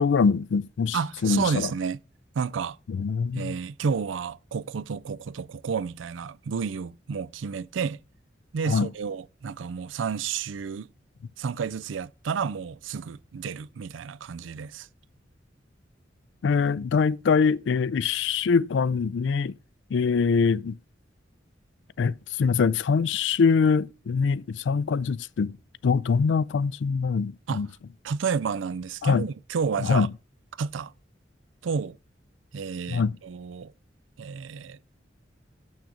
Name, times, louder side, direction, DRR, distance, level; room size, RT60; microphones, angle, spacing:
voice 1, 0.0-1.7 2.9-3.6 8.7-8.9 16.4-19.5 19.9-20.8 22.0-25.6 25.8-27.7 29.0-29.3 29.8-30.1 32.9-33.2, left 5 dB, 70° left, 0.4 m, -23 dB
voice 2, 0.9-2.0 2.4-2.8 3.3-8.0 8.5-10.9 11.4-14.9 27.5-27.6 28.0-30.1 30.6-30.9 31.6-32.0 32.5-33.7 34.2-34.8, right 6 dB, 85° right, 0.4 m, -31 dB
7.1 x 6.4 x 4.9 m
head